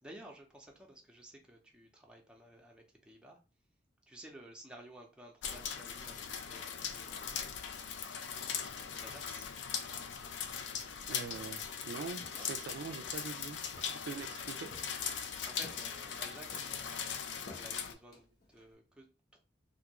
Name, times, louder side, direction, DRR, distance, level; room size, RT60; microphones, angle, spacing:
voice 1, 0.0-3.4 4.1-7.6 8.9-9.5 12.3-12.5 15.4-17.3 17.5-19.4, right 1 dB, 5° right, 0.6 m, -54 dB
sound 1, 5.4-17.9, left 7 dB, 75° left, 0.4 m, -40 dB
Walk footsteps, 11.0-11.7 12.2-13.2 13.7-14.3 14.7-15.2 15.6-16.2 16.5-18.7, left 2 dB, 55° left, 0.9 m, -56 dB
voice 2, 11.1-14.7, right 5 dB, 70° right, 0.4 m, -44 dB
2.6 x 2.4 x 2.9 m
head